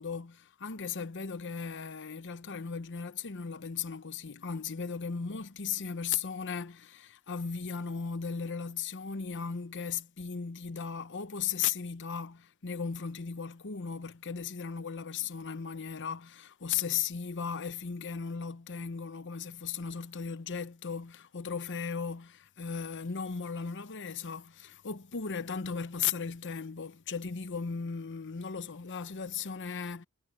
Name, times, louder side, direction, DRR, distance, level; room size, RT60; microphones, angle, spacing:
voice 1, 0.0-30.1, left 6 dB, 55° left, 0.9 m, -36 dB
head